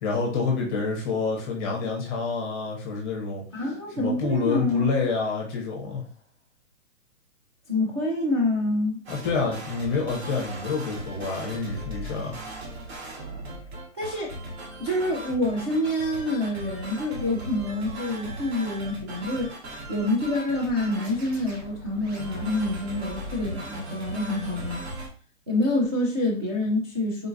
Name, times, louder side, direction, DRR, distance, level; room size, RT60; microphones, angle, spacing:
voice 1, 0.0-3.4 4.0-6.1 9.1-12.3, left 4 dB, 20° left, -1 dB, 0.6 m, -28 dB
voice 2, 3.5-4.9 7.7-9.0 14.0-14.3 14.8-19.5 19.9-24.8 25.5-27.3, left 1 dB, 25° right, -5 dB, 0.3 m, -27 dB
sound 1, 9.1-25.1, right 1 dB, 50° right, 1.1 m, -38 dB
3.7 x 2.3 x 2.6 m, 0.41 s
hypercardioid pair, 145°, 39 cm